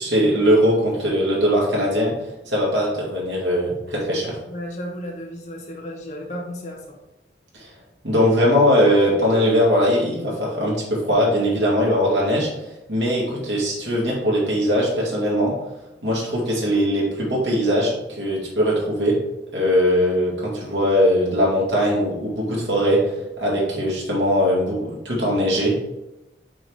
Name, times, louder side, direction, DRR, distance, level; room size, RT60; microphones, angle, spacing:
voice 1, 0.0-2.1 2.5-4.4 7.5-7.7 8.0-12.5 12.9-15.5 16.0-19.2 19.5-25.7, equal, 80° right, -4 dB, 2.4 m, -20 dB
voice 2, 4.5-7.0, equal, 40° left, -1 dB, 1.3 m, -33 dB
6.1 x 3.9 x 4.9 m, 0.94 s
head